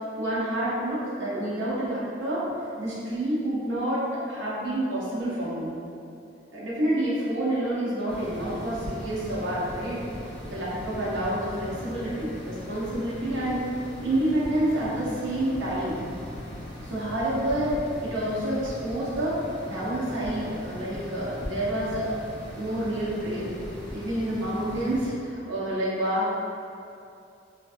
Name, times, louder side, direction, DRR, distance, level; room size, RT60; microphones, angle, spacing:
voice 1, 0.2-2.5 2.8-5.7 6.5-10.0 10.5-13.6 14.0-16.0 16.8-22.1 22.5-23.5 23.9-26.3, right 1 dB, 80° right, -8 dB, 0.6 m, -28 dB
sound 1, 8.1-25.1, equal, 10° left, 0.5 m, -39 dB
2.5 x 2.3 x 2.4 m, 2.6 s
head